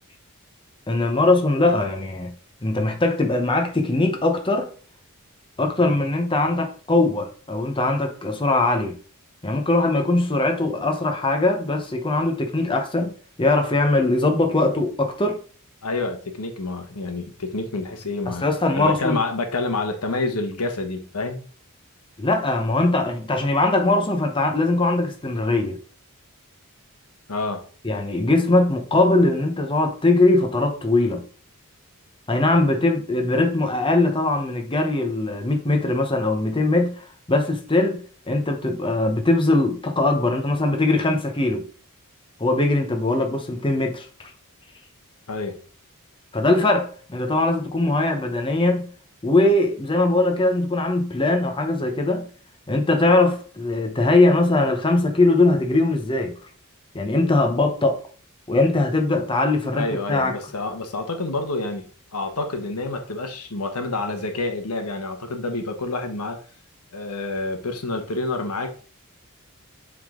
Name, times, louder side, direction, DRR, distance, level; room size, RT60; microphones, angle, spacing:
voice 1, 0.9-2.3 2.6-4.7 5.6-9.0 9.4-13.1 13.4-15.4 18.4-19.2 22.2-25.8 27.8-31.2 32.3-37.0 37.3-41.7 42.4-44.1 46.3-48.9 49.2-52.3 52.7-56.3 56.9-58.0 58.5-60.3, left 2 dB, 25° left, 0.9 m, -21 dB
voice 2, 15.8-18.5 18.7-21.5 27.3-27.6 45.3-45.6 59.7-66.4 66.9-68.7, left 2 dB, 90° left, 1.2 m, -28 dB
7.8 x 3.7 x 3.7 m
head